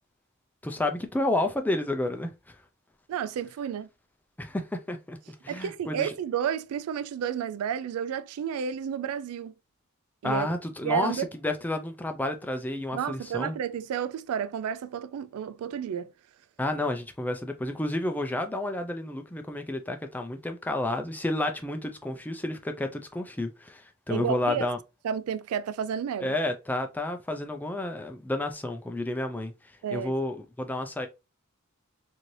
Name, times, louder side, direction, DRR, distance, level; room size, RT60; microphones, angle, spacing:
voice 1, 0.6-2.5 4.4-5.2 5.4-6.1 10.2-13.6 16.6-24.8 26.2-29.5 29.9-31.1, left 1 dB, 10° left, 0.3 m, -30 dB
voice 2, 3.1-3.9 5.5-9.5 10.2-10.5 10.8-11.3 12.9-16.1 24.1-24.7 25.0-26.3 29.8-30.1, right 8 dB, 80° right, 0.3 m, -31 dB
3.1 x 2.6 x 2.6 m
head